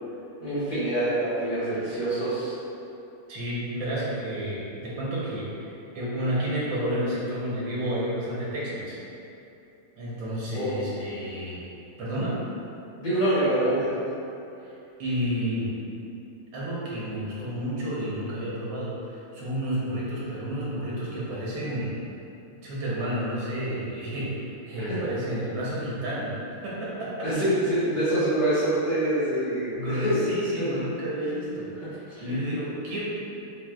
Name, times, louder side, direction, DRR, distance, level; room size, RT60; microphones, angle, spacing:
voice 1, 0.4-2.6 10.5-10.9 13.0-14.0 24.8-25.0 27.2-30.3 30.6-30.8 31.8-31.9 32.1-32.4, right 1 dB, 60° left, -12 dB, 1.5 m, -26 dB
voice 2, 3.3-9.0 10.0-11.6 12.0-12.4 14.6-15.7 16.5-21.9 22.6-26.4 26.6-27.3 29.7-33.0, equal, 80° right, -7 dB, 1.7 m, -31 dB
6.0 x 2.3 x 2.3 m, 2.8 s
omnidirectional pair, 2.0 m